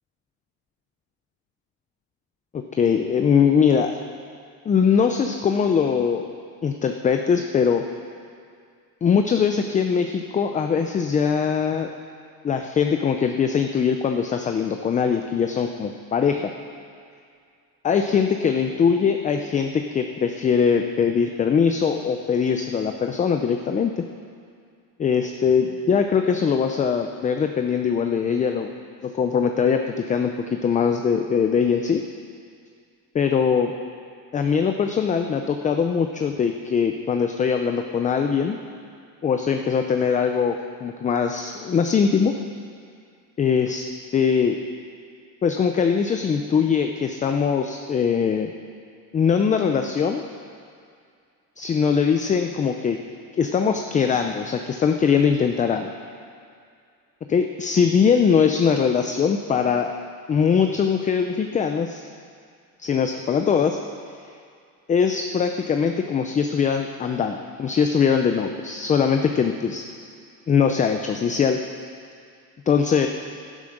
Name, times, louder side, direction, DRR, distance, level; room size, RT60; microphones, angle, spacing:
voice 1, 2.5-3.9 4.7-6.3 6.6-7.8 9.0-11.9 12.4-16.5 17.8-24.0 25.0-28.7 29.0-32.0 33.1-33.7 34.3-38.6 39.2-42.3 43.4-43.8 44.1-44.6 45.4-48.5 49.1-50.2 51.6-53.0 53.4-55.9 57.3-60.0 60.3-62.1 62.8-63.8 64.9-69.9 70.5-71.6 72.7-73.1, left 6 dB, 20° left, 5 dB, 0.4 m, -21 dB
12.0 x 10.0 x 6.5 m, 2.3 s
cardioid pair, 145°, 38 cm